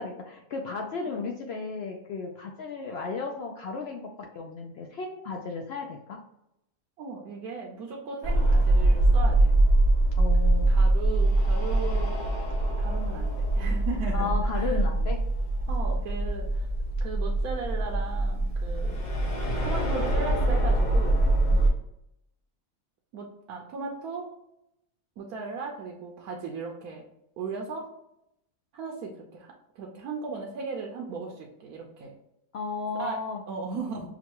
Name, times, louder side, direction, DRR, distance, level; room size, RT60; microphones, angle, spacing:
voice 1, 0.0-4.1 4.3-6.2 10.2-10.7 14.1-15.2 21.5-21.6 32.5-33.4, left 4 dB, 75° left, 1 dB, 0.5 m, -34 dB
voice 2, 7.0-9.5 10.4-12.2 12.8-14.8 15.7-16.7 17.0-19.0 19.6-21.2 23.1-24.3 25.2-27.1 27.4-27.9 28.7-32.1 33.0-33.2 33.5-34.1, right 4 dB, 75° right, 0 dB, 1.1 m, -37 dB
sound 1, 8.2-21.7, right 1 dB, 40° left, 0.7 m, -23 dB
6.1 x 2.3 x 2.9 m, 0.82 s
omnidirectional pair, 1.6 m